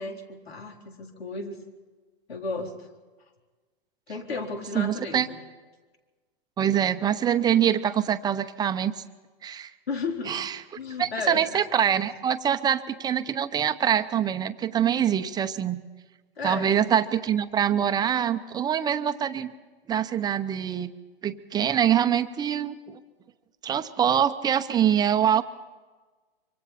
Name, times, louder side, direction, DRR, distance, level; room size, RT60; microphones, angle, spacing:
voice 1, 0.0-1.6 2.3-2.9 4.1-5.4 9.9-10.4 10.8-11.6 16.4-16.8, left 4 dB, 85° left, 2 dB, 4.1 m, -34 dB
voice 2, 4.7-5.3 6.6-9.0 9.4-9.7 10.3-10.5 11.0-15.8 16.4-19.5 19.9-20.9 21.2-23.0 23.6-25.4, right 9 dB, 15° right, 10 dB, 0.8 m, -24 dB
25.5 x 24.0 x 4.3 m, 1.3 s
hypercardioid pair, 130°, 30 cm